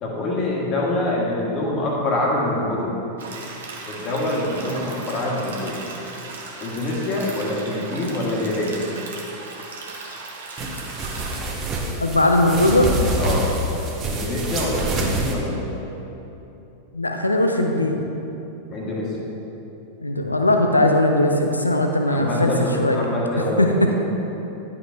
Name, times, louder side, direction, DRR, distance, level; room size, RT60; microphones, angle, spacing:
voice 1, 0.0-2.9 3.9-5.8 6.6-8.8 13.2-13.5 14.0-15.8 18.7-19.3 22.0-23.9, left 1 dB, 35° left, -3 dB, 1.5 m, -25 dB
sound 1, 3.2-11.4, right 3 dB, 60° right, 1.0 m, -37 dB
sound 2, 10.6-15.3, right 1 dB, 25° right, 1.1 m, -26 dB
voice 2, 12.0-12.9 15.0-15.1 16.9-18.1 20.0-22.5 22.8-23.0 23.6-23.7, left 1 dB, 80° left, 4 dB, 0.5 m, -19 dB
11.0 x 5.6 x 2.7 m, 3.0 s
figure-of-eight pair, 90°, 0 cm